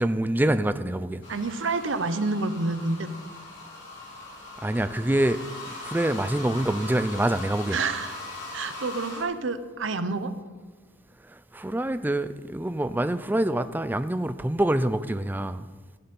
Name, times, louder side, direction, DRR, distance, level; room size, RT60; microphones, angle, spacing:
voice 1, 0.0-1.2 4.6-5.4 5.8-7.8 11.3-15.7, right 1 dB, 10° right, 12 dB, 0.4 m, -26 dB
sound 1, 1.2-9.2, left 2 dB, 65° left, 3.4 m, -40 dB
voice 2, 1.3-3.2 7.7-8.1 8.5-10.3, right 3 dB, 75° right, 10 dB, 0.8 m, -28 dB
15.5 x 6.9 x 5.3 m, 1.3 s
head